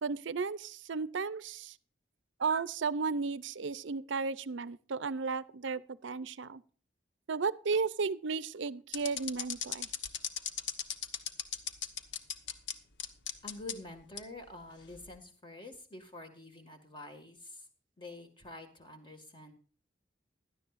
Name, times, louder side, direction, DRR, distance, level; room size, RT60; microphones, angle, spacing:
voice 1, 0.0-1.8 2.4-6.6 7.3-9.9, right 4 dB, 75° right, 0.6 m, -34 dB
sound 1, 8.9-12.7 13.0-13.7 14.2-14.3 14.9-15.2, left 8 dB, 70° left, 1.0 m, -36 dB
voice 2, 13.4-17.7 18.0-19.5, left 2 dB, 25° left, 1.9 m, -47 dB
16.5 x 11.5 x 2.5 m
head